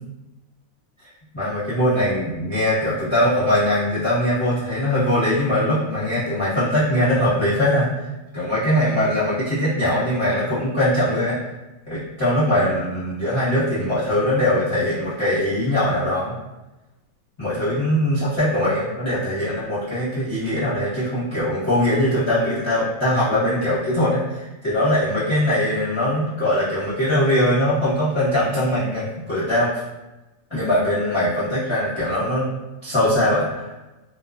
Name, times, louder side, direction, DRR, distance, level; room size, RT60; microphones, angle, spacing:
voice 1, 1.3-7.9 8.3-11.4 11.9-16.3 17.4-29.8 30.5-32.4 32.8-33.7, left 1 dB, 25° left, -12 dB, 0.7 m, -21 dB
2.4 x 2.2 x 2.4 m, 1.0 s
omnidirectional pair, 1.6 m